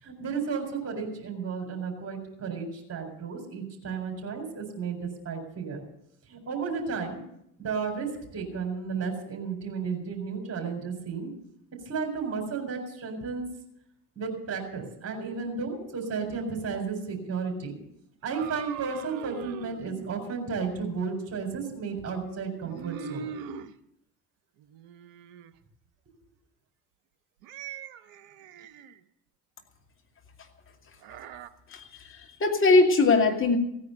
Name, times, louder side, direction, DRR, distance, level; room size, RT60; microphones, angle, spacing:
voice 1, 0.0-5.8 6.3-7.2 7.6-11.3 11.9-13.4 14.2-17.7 18.2-23.3, right 5 dB, 30° right, 2 dB, 4.2 m, -33 dB
sound 1, 18.2-20.1 22.6-23.7 24.6-25.5 27.4-29.0 31.0-31.5, right 8 dB, 60° right, 0.9 m, -41 dB
voice 2, 31.7-33.6, left 3 dB, 25° left, 2 dB, 2.5 m, -21 dB
16.0 x 9.7 x 6.6 m, 0.76 s
figure-of-eight pair, 55°, 47 cm